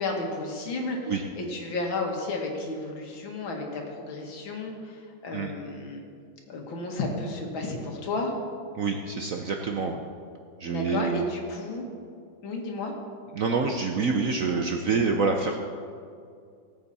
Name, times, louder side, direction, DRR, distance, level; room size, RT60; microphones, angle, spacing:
voice 1, 0.0-6.0 6.5-8.3 10.6-11.8 12.4-12.9, left 2 dB, 80° left, 1 dB, 2.4 m, -32 dB
voice 2, 8.8-10.0 10.6-11.2 13.3-15.6, right 4 dB, 65° right, 3 dB, 0.8 m, -26 dB
18.0 x 8.1 x 4.2 m, 2.3 s
omnidirectional pair, 2.1 m